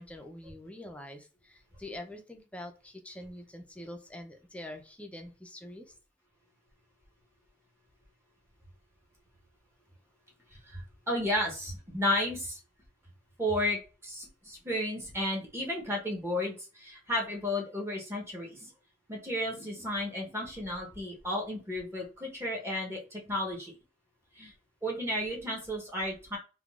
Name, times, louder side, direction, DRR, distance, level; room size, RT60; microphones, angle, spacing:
voice 1, 0.0-5.9, left 1 dB, 5° left, 4 dB, 0.5 m, -45 dB
voice 2, 10.7-12.6 13.4-18.7 19.1-23.7 24.3-24.5 24.8-26.4, left 1 dB, 15° right, -2 dB, 0.8 m, -33 dB
3.6 x 2.3 x 2.4 m, 0.33 s
head